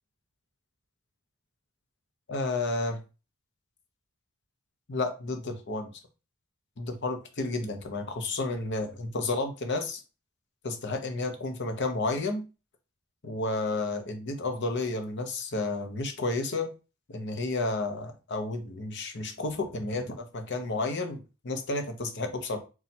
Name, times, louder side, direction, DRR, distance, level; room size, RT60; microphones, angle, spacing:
voice 1, 2.3-3.0 4.9-5.9 6.8-10.0 10.6-12.4 13.2-16.7 17.1-22.6, left 2 dB, 55° left, 6 dB, 0.7 m, -31 dB
4.2 x 2.3 x 4.1 m, 0.31 s
head